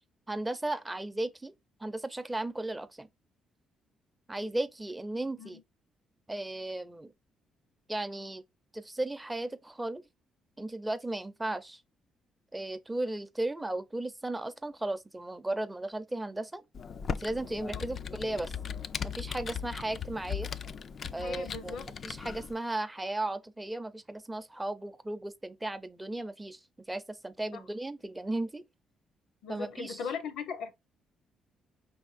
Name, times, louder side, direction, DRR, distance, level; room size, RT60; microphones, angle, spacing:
voice 1, 0.3-1.5 1.8-3.1 4.3-5.6 6.3-7.1 7.9-8.4 8.7-10.0 10.6-11.8 12.5-16.6 17.1-18.5 19.0-20.5 21.1-26.6 26.9-28.6 29.5-30.0, right 2 dB, 15° right, 0.6 m, -35 dB
Computer keyboard, 16.7-22.5, left 7 dB, 50° left, 0.4 m, -38 dB
voice 2, 21.0-21.9 27.5-27.6 29.4-30.7, left 6 dB, 80° left, 0.9 m, -39 dB
5.1 x 3.5 x 2.5 m
cardioid pair, 90°, 0 cm